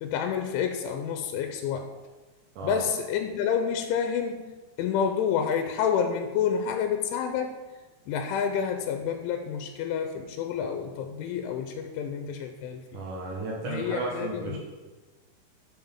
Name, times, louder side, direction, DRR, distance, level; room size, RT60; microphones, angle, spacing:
voice 1, 0.0-1.9 2.6-4.5 4.8-7.6 8.1-13.0 13.7-14.6, left 7 dB, 90° left, 6 dB, 3.1 m, -29 dB
voice 2, 12.9-14.6, right 2 dB, 70° right, -2 dB, 1.9 m, -33 dB
7.4 x 5.8 x 7.0 m, 1.3 s
omnidirectional pair, 5.4 m